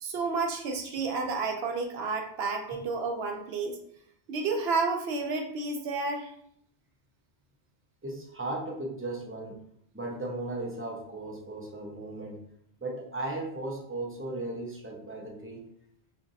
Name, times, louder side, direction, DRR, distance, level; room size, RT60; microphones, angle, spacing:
voice 1, 0.0-3.8 4.3-6.3, right 4 dB, 70° right, 3 dB, 0.8 m, -31 dB
voice 2, 8.0-9.6 9.9-12.5 12.8-15.6, right 2 dB, 20° right, -1 dB, 0.4 m, -36 dB
2.5 x 2.4 x 3.9 m, 0.69 s
omnidirectional pair, 1.1 m